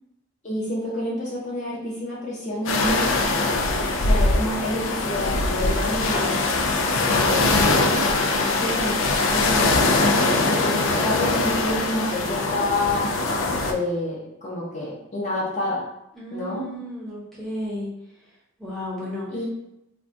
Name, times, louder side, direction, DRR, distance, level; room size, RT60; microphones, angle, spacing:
voice 1, 0.4-3.1 4.0-6.4 7.0-10.0 10.5-13.0 13.6-15.8 16.3-16.7 19.3-19.5, left 1 dB, 35° left, -6 dB, 0.7 m, -29 dB
sound 1, 2.7-13.7, left 2 dB, 70° left, 0.3 m, -22 dB
voice 2, 16.2-17.9 18.6-19.3, equal, ahead, -8 dB, 0.8 m, -33 dB
3.5 x 2.3 x 2.5 m, 0.84 s
head